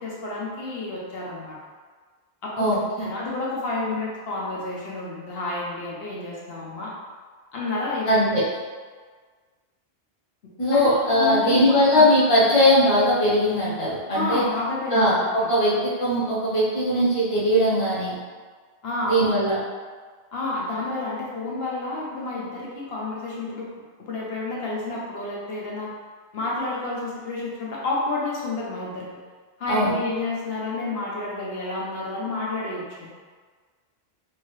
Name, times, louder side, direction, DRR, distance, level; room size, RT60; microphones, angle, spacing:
voice 1, 0.0-1.6 2.4-2.7 3.0-6.9 7.5-8.3 10.7-12.0 14.1-15.1 18.8-19.3 20.3-23.7 24.0-25.9 26.3-29.1 29.6-33.1, left 2 dB, 70° left, -4 dB, 1.0 m, -30 dB
voice 2, 2.6-3.1 8.1-8.4 10.6-14.4 14.9-18.2 19.0-19.6 29.7-29.9, equal, 35° left, -8 dB, 0.9 m, -20 dB
2.8 x 2.7 x 3.1 m, 1.5 s
omnidirectional pair, 1.1 m